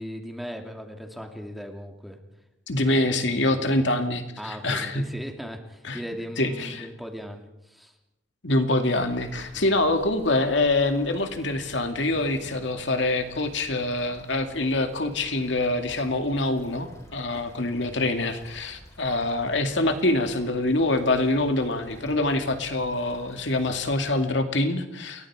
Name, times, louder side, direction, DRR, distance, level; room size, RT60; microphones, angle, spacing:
voice 1, 0.0-2.2 3.3-3.6 4.4-7.9 9.5-9.7 12.4-12.7 17.4-17.7, equal, ahead, 3 dB, 2.6 m, -38 dB
voice 2, 2.7-5.0 5.8-6.0 6.4-6.9 8.4-25.3, left 2 dB, 65° left, 6 dB, 2.4 m, -25 dB
sound 1, 9.0-24.3, equal, 15° left, 7.6 m, -50 dB
29.0 x 22.5 x 4.9 m, 0.88 s
head